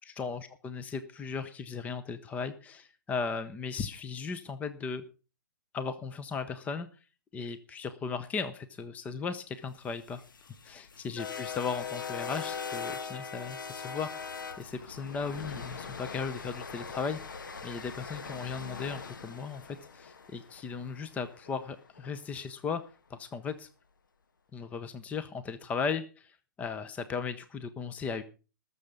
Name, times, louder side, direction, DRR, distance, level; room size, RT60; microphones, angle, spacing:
voice 1, 0.0-5.0 5.7-6.9 7.3-10.2 10.6-22.8 23.1-23.7 24.5-28.2, left 5 dB, 15° left, 10 dB, 0.8 m, -37 dB
sound 1, 9.9-22.1, left 5 dB, 75° left, 1.7 m, -41 dB
19.5 x 7.0 x 5.2 m, 0.35 s
hypercardioid pair, 130°, 11 cm